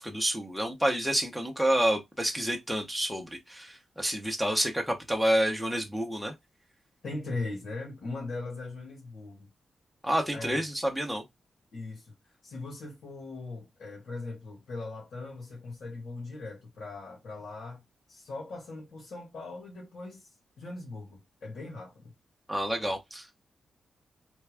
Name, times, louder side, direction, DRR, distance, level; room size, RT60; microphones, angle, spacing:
voice 1, 0.0-6.3 10.0-11.2 22.5-23.2, right 1 dB, ahead, 0.7 m, -29 dB
voice 2, 7.0-9.5 10.3-10.6 11.7-12.1 12.4-17.8 18.1-22.1 22.9-23.0, left 3 dB, 70° left, 1.6 m, -40 dB
3.4 x 2.3 x 3.3 m
wide cardioid pair, 155°, 0 cm